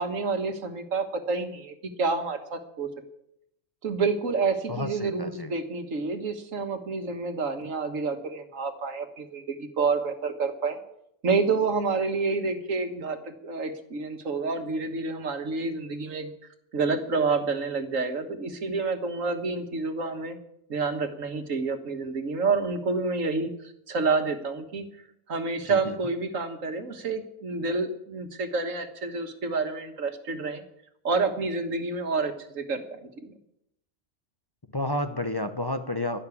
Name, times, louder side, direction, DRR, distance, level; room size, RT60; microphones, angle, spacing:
voice 1, 0.0-2.9 3.8-10.8 11.2-16.3 16.7-20.4 20.7-23.5 23.9-24.8 25.3-30.6 31.0-33.3, right 4 dB, 90° right, 7 dB, 1.8 m, -28 dB
voice 2, 4.7-5.5 25.7-26.0 34.7-36.2, left 1 dB, 20° left, 8 dB, 0.7 m, -30 dB
12.0 x 11.5 x 8.5 m, 0.78 s
omnidirectional pair, 1.3 m